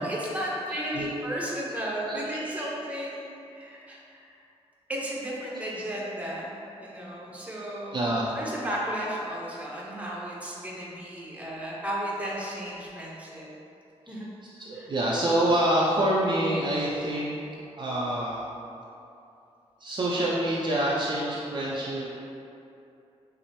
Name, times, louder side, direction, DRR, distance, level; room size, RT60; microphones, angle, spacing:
voice 1, 0.0-4.3 4.9-13.5 14.1-14.3 14.7-14.9, equal, 10° right, -5 dB, 0.7 m, -34 dB
voice 2, 0.7-1.1 2.1-2.7 5.5-5.6 7.9-8.3 13.3-13.4 14.5-17.4 17.8-18.4 19.8-22.1, right 1 dB, 40° right, -6 dB, 0.4 m, -27 dB
5.9 x 2.0 x 2.9 m, 2.7 s
wide cardioid pair, 105°, 12 cm